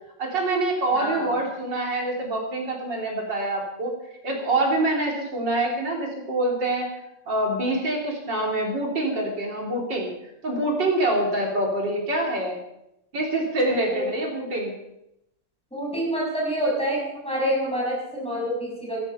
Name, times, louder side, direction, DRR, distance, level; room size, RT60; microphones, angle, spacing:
voice 1, 0.2-4.0 4.2-6.9 7.3-10.1 10.4-12.6 13.1-14.7, right 2 dB, 55° right, 0 dB, 3.7 m, -25 dB
voice 2, 0.9-1.3 13.9-14.1 15.7-19.0, equal, ahead, -3 dB, 6.2 m, -27 dB
14.5 x 12.0 x 5.5 m, 0.84 s
omnidirectional pair, 2.4 m